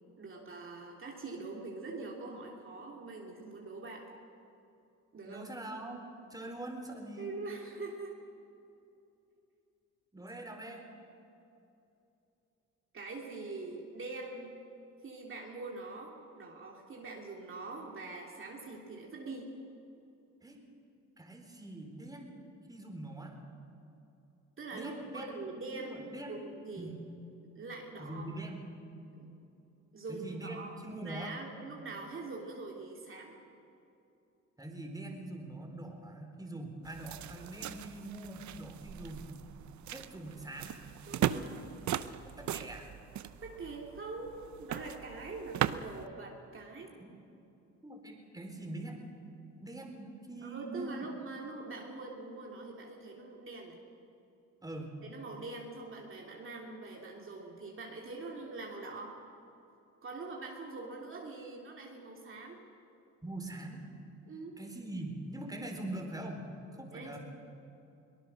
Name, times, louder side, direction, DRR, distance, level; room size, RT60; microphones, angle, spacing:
voice 1, 0.2-4.1 5.1-5.5 7.2-8.2 10.2-10.3 12.9-14.5 15.0-19.5 24.6-26.0 26.3-26.9 27.5-28.3 29.1-29.3 29.9-30.7 31.0-33.3 41.1-41.7 43.4-46.9 50.4-53.8 55.0-59.2 60.0-62.6 64.3-64.6 66.9-67.2, right 3 dB, 45° right, -1 dB, 3.0 m, -43 dB
voice 2, 5.2-6.0 6.3-7.3 10.1-10.9 20.4-20.6 21.2-22.3 22.7-23.4 24.7-25.3 25.7-26.4 26.8-27.0 28.0-28.6 30.1-31.3 34.6-39.3 39.9-40.8 42.2-42.9 47.0-47.1 47.8-49.1 49.6-51.1 54.6-54.9 63.2-63.9 64.6-66.5 66.8-67.2, right 2 dB, 10° right, 2 dB, 3.9 m, -43 dB
sound 1, 36.8-46.1, right 11 dB, 70° right, 0.8 m, -38 dB
23.0 x 19.0 x 6.4 m, 2.8 s
cardioid pair, 90°, 30 cm